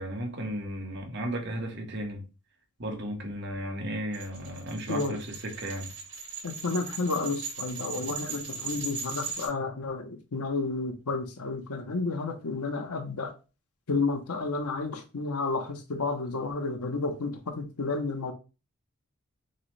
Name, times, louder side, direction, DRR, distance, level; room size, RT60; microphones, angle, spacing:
voice 1, 0.0-2.2 2.8-5.9, equal, 50° right, 1.1 m, -34 dB
sound 1, 4.1-9.5, right 5 dB, 75° right, 1.5 m, -38 dB
voice 2, 6.4-13.3 13.9-18.3, left 3 dB, 85° left, 0.8 m, -31 dB
6.4 x 2.2 x 3.2 m
head